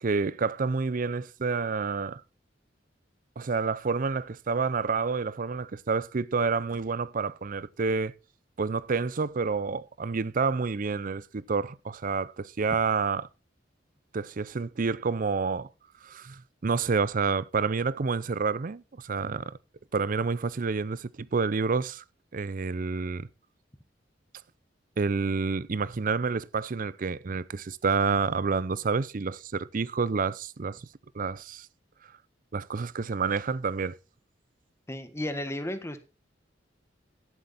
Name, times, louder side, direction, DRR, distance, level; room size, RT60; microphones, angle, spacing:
voice 1, 0.0-2.2 3.4-8.1 8.6-13.3 14.1-15.7 16.0-19.6 19.9-22.0 22.3-23.3 25.0-30.8 31.1-31.7 32.5-34.0, right 4 dB, 45° right, 0.5 m, -29 dB
voice 2, 34.9-36.0, left 1 dB, 15° left, 1.5 m, -33 dB
11.5 x 11.0 x 4.1 m
head